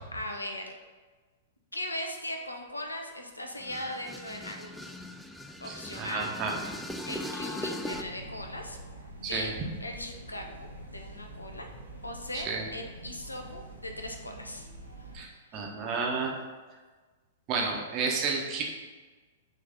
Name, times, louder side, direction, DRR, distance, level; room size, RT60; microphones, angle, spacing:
voice 1, 0.1-0.6 1.7-4.7 5.6-6.3 7.1-8.8 9.2-9.5 9.8-11.7 12.0-14.7 15.2-15.7, left 1 dB, 85° left, 3 dB, 0.7 m, -39 dB
sound 1, 3.6-8.0, left 1 dB, 5° left, 0.4 m, -39 dB
voice 2, 5.7-6.5 9.2-9.5 12.3-12.6 15.1-16.3 17.5-18.6, right 4 dB, 30° right, 0 dB, 1.1 m, -31 dB
sound 2, 7.9-15.2, right 1 dB, 85° right, 1.0 m, -46 dB
5.6 x 3.2 x 5.1 m, 1.3 s
figure-of-eight pair, 105°, 0 cm